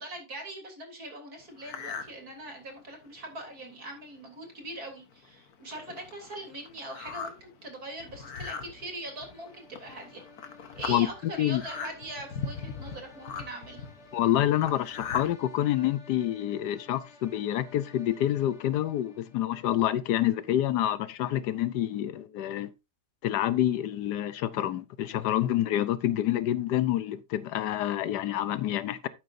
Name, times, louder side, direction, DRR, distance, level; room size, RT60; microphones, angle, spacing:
voice 1, 0.0-10.2 10.8-13.9, right 1 dB, 60° right, 3.8 m, -41 dB
sound 1, 1.6-2.1 2.6-2.7 3.3-3.4 3.7-4.0 4.6-4.7 5.1-15.4, left 6 dB, 60° left, 1.7 m, -40 dB
sound 2, 8.6-19.6, left 1 dB, 40° left, 1.9 m, -53 dB
voice 2, 14.1-22.7 23.2-29.1, left 12 dB, 80° left, 1.2 m, -27 dB
12.0 x 8.7 x 2.6 m
omnidirectional pair, 1.8 m